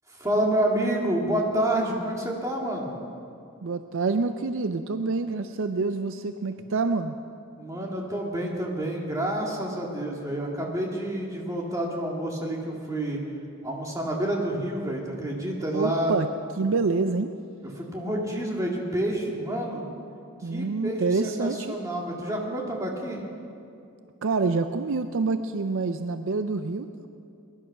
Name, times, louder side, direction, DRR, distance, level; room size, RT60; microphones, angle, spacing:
voice 1, 0.1-2.9 7.6-13.2 13.6-16.1 17.8-19.9 20.5-23.2, right 1 dB, 15° right, -1 dB, 2.1 m, -28 dB
voice 2, 3.6-7.2 15.7-16.3 16.6-17.3 20.4-21.8 24.2-27.1, right 3 dB, 60° right, 9 dB, 0.5 m, -27 dB
20.0 x 11.5 x 5.9 m, 2.6 s
head